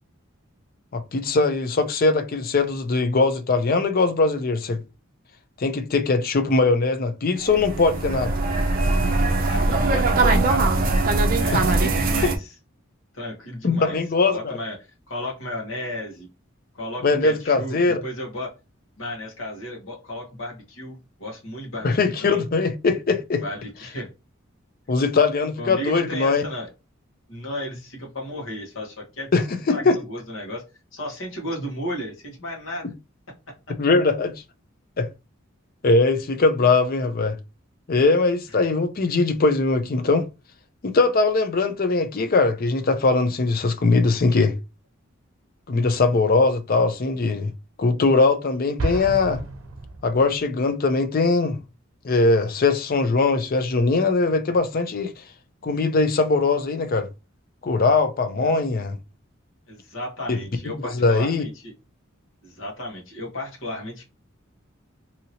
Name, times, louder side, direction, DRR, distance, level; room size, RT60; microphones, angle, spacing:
voice 1, 0.9-4.8 5.6-8.4 11.5-11.6 13.6-14.6 17.0-18.0 21.8-23.4 24.9-26.4 29.3-30.0 33.8-34.3 35.0-35.1 35.8-37.4 37.9-40.3 40.8-44.5 45.7-47.5 47.8-49.4 50.0-51.6 52.0-55.1 55.6-57.1 57.6-59.0 60.3-60.4 60.7-61.5, left 3 dB, 45° left, 0.5 m, -21 dB
sound 1, 7.4-12.4, right 2 dB, 45° right, 0.5 m, -21 dB
voice 2, 9.4-11.1 11.4-12.5 13.1-14.0 14.3-14.8 15.1-16.3 16.7-18.5 19.0-22.4 23.4-24.1 25.6-26.7 27.3-29.4 29.7-30.6 30.9-32.9 33.7-33.8 36.6-36.7 58.4-58.6 59.7-61.7 62.4-64.0, left 1 dB, 70° left, 1.2 m, -34 dB
Explosion, 48.8-50.6, right 2 dB, 90° right, 0.6 m, -31 dB
2.8 x 2.7 x 2.7 m
head